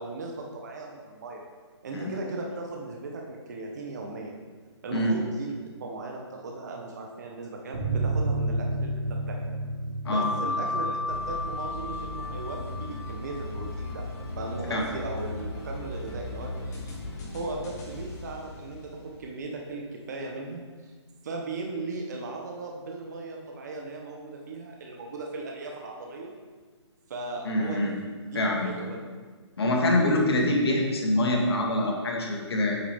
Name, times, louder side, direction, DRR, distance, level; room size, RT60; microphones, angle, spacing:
voice 1, 0.0-1.4 1.8-4.4 4.8-5.5 5.8-9.4 10.1-14.1 14.4-17.0 17.3-20.9 21.2-26.4 27.1-27.9 28.2-29.0, right 3 dB, 35° right, 1 dB, 0.8 m, -37 dB
sound 1, 7.7-14.8 15.1-15.2 15.5-15.6, right 2 dB, 65° right, 1.8 m, -33 dB
sound 2, 10.1-15.3, left 2 dB, 5° right, 1.1 m, -34 dB
sound 3, 11.0-19.5, left 2 dB, 35° left, 2.1 m, -38 dB
voice 2, 27.5-27.9 28.3-28.8 29.6-32.8, left 1 dB, 60° left, 0 dB, 1.6 m, -25 dB
8.3 x 6.1 x 3.5 m, 1.4 s
hypercardioid pair, 170°, 15 cm